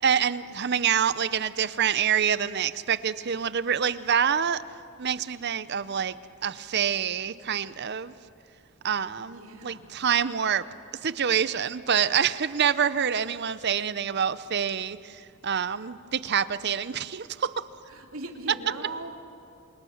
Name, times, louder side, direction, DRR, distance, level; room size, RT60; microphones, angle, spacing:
voice 1, 0.0-4.6 5.0-6.2 6.4-8.1 8.8-10.6 11.0-17.7, right 8 dB, 50° right, 16 dB, 0.7 m, -26 dB
voice 2, 9.3-9.9 17.9-19.3, right 2 dB, 70° right, 3 dB, 2.9 m, -39 dB
29.5 x 26.5 x 7.2 m, 2.7 s
head